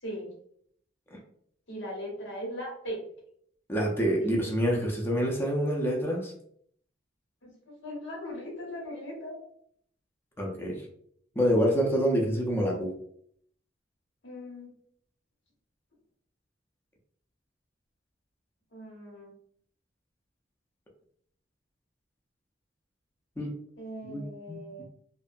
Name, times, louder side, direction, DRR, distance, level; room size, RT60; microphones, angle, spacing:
voice 1, 1.7-3.0 4.2-4.3 7.4-7.5 7.8-9.4 14.2-14.7 18.7-19.3 23.8-24.8, equal, 80° left, -2 dB, 1.1 m, -39 dB
voice 2, 3.7-6.3 10.4-10.8 11.4-12.9 23.4-23.5 24.0-24.2 24.5-24.8, equal, 10° left, -1 dB, 0.5 m, -27 dB
2.7 x 2.2 x 2.4 m, 0.65 s
head